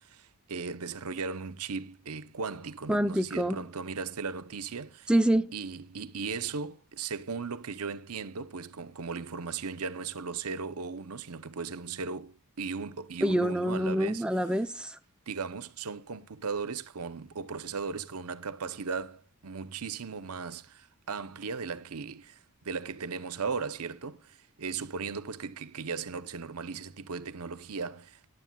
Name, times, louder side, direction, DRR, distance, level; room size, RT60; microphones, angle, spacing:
voice 1, 0.0-5.1 5.5-14.2 15.3-22.4 22.6-28.3, right 5 dB, 80° right, 0.8 m, -37 dB
voice 2, 2.9-3.6 5.1-5.5 13.2-15.0, right 1 dB, 5° right, 0.5 m, -26 dB
18.5 x 11.0 x 2.3 m
head